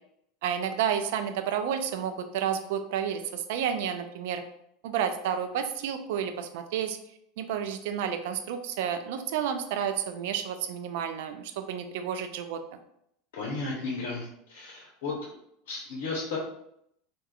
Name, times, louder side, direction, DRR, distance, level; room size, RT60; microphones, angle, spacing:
voice 1, 0.4-4.4 4.8-7.0 7.4-12.6, right 8 dB, 70° right, 8 dB, 0.3 m, -31 dB
voice 2, 13.3-15.3 15.7-16.4, left 3 dB, 70° left, -4 dB, 0.7 m, -34 dB
3.4 x 2.2 x 2.2 m, 0.74 s
hypercardioid pair, 85°, 0 cm